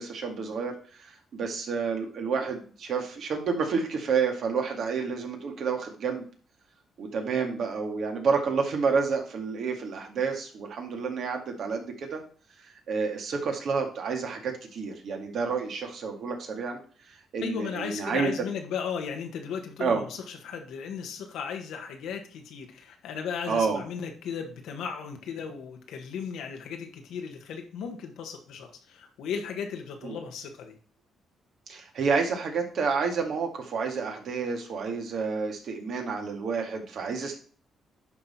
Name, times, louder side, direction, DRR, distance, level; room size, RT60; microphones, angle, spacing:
voice 1, 0.0-6.2 7.0-12.2 12.9-16.8 17.3-18.3 19.8-20.0 23.5-23.8 30.0-30.2 31.7-37.4, right 5 dB, 65° right, 2 dB, 2.1 m, -29 dB
voice 2, 17.4-30.8, left 6 dB, 85° left, 4 dB, 1.6 m, -36 dB
10.5 x 3.8 x 4.4 m, 0.41 s
cardioid pair, 90°, 0 cm